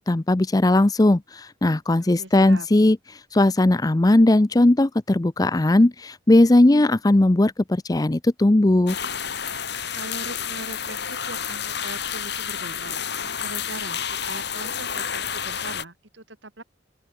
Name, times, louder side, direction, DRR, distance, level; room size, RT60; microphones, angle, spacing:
voice 1, 0.0-9.0, left 1 dB, 20° left, 0.5 m, -18 dB
voice 2, 2.0-2.7 9.9-16.6, right 2 dB, 70° right, 6.6 m, -40 dB
sound 1, 8.9-15.8, left 8 dB, 60° left, 5.5 m, -30 dB
open air
head